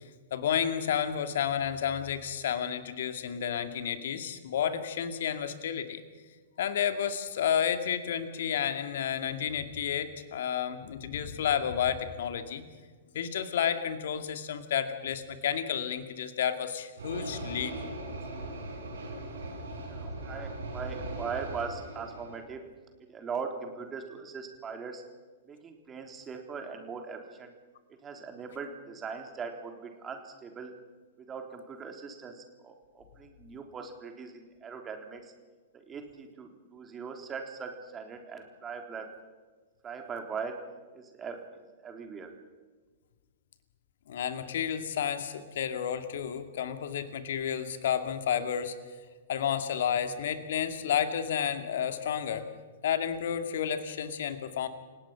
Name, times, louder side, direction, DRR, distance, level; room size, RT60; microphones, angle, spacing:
voice 1, 0.3-6.0 6.6-12.6 13.1-17.8 44.1-48.8 49.3-52.4 52.8-54.7, left 8 dB, 60° left, 9 dB, 2.3 m, -31 dB
sound 1, 17.0-22.4, right 2 dB, 75° right, 6.0 m, -39 dB
voice 2, 19.9-22.6 23.1-25.0 25.5-27.5 28.0-30.7 31.2-35.3 35.7-39.1 39.8-40.6 40.9-42.3, right 5 dB, 20° right, 4 dB, 3.8 m, -40 dB
29.5 x 18.0 x 5.9 m, 1.4 s
figure-of-eight pair, 110°, 0 cm